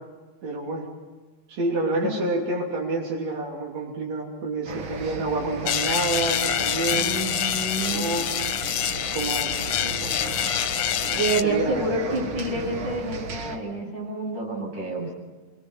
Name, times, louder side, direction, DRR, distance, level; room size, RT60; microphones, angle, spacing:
voice 1, 0.4-0.9 1.5-7.1 7.9-8.3 9.1-10.3 11.1-11.9, right 2 dB, 65° right, -3 dB, 4.4 m, -28 dB
sound 1, 4.7-13.6, right 4 dB, 50° right, 1.9 m, -35 dB
sound 2, 5.7-11.4, left 10 dB, 75° left, 2.2 m, -26 dB
voice 2, 6.9-8.1 11.2-15.1, right 2 dB, 35° right, -2 dB, 8.9 m, -28 dB
28.0 x 24.0 x 5.8 m, 1.3 s
omnidirectional pair, 3.3 m